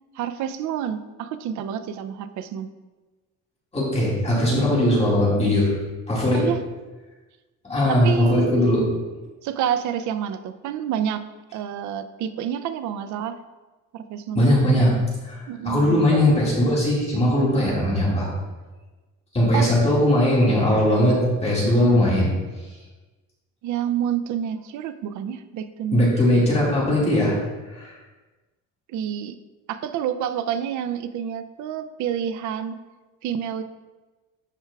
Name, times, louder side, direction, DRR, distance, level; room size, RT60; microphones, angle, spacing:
voice 1, 0.1-2.7 6.3-6.6 7.9-8.8 9.4-11.2 11.5-13.4 13.9-14.4 15.5-16.1 19.5-19.7 21.7-22.2 23.6-26.1 28.9-29.4 29.7-32.7 33.2-33.6, right 9 dB, 60° right, 11 dB, 0.5 m, -28 dB
voice 2, 3.7-5.7 6.1-6.5 7.6-8.8 14.4-15.0 15.2-18.3 19.3-22.3 25.9-27.4 27.7-27.9, left 1 dB, 20° left, -6 dB, 2.0 m, -19 dB
11.5 x 4.4 x 2.3 m, 1.2 s
cardioid pair, 125°, 33 cm